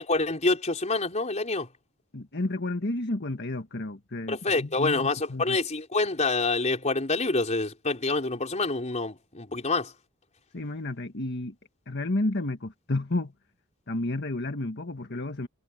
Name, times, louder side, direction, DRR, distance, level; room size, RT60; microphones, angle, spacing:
voice 1, 0.0-1.7 4.3-9.9, left 3 dB, 35° left, 4.1 m, -27 dB
voice 2, 2.1-5.6 10.5-11.5 11.9-13.3 13.9-15.5, left 2 dB, 50° left, 1.6 m, -31 dB
head